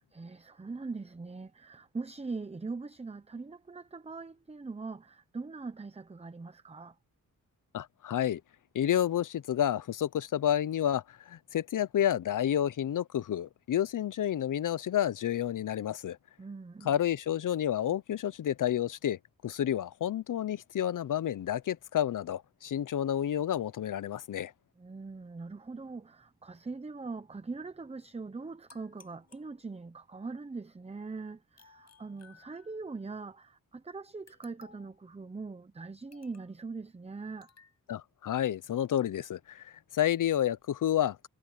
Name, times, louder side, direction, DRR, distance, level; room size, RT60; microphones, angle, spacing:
voice 1, 0.1-7.0 16.4-16.9 24.8-37.5, right 4 dB, 20° right, 0.8 m, -42 dB
voice 2, 7.7-8.4 8.7-16.2 16.8-24.5 37.9-41.3, left 10 dB, 75° left, 0.7 m, -30 dB
sound 1, 28.7-30.1 31.6-33.0 34.3-35.0 36.1-36.6 37.4-37.8, left 5 dB, 55° left, 7.3 m, -60 dB
wide cardioid pair, 115°, 32 cm